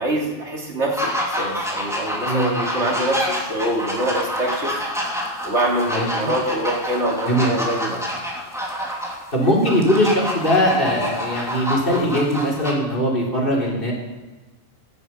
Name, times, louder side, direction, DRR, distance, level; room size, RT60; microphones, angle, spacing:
voice 1, 0.0-4.7 5.4-8.1, right 1 dB, 80° right, -1 dB, 3.2 m, -25 dB
sound 1, 0.9-12.7, equal, ahead, 3.1 m, -27 dB
voice 2, 2.2-2.7 5.9-6.3 7.3-7.5 9.3-13.9, equal, 50° left, -2 dB, 4.2 m, -20 dB
17.0 x 10.0 x 5.7 m, 1.2 s
omnidirectional pair, 1.2 m